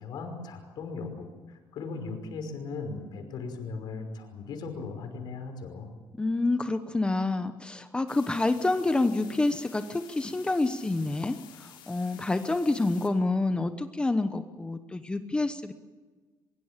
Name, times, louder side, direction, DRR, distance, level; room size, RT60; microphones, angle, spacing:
voice 1, 0.0-5.9, left 4 dB, 60° left, 5 dB, 5.5 m, -38 dB
voice 2, 6.2-15.7, left 2 dB, 10° left, 9 dB, 1.0 m, -28 dB
sound 1, 8.1-13.1, left 10 dB, 85° left, 5.8 m, -51 dB
23.0 x 22.5 x 7.4 m, 1.4 s
cardioid pair, 140°, 8 cm